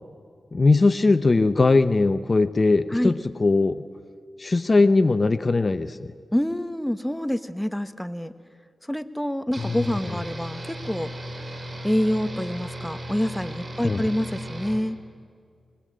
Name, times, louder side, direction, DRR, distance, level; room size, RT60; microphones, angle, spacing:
voice 1, 0.5-3.1 3.4-3.8 4.4-6.1 9.6-9.9 13.8-14.0, left 3 dB, 45° left, 12 dB, 0.8 m, -20 dB
voice 2, 6.3-8.3 8.9-11.1 11.8-15.0, equal, 5° left, 11 dB, 1.2 m, -26 dB
sound 1, 9.5-14.8, equal, 40° right, 4.0 m, -36 dB
24.0 x 21.0 x 7.6 m, 2.1 s
cardioid pair, 50°, 0 cm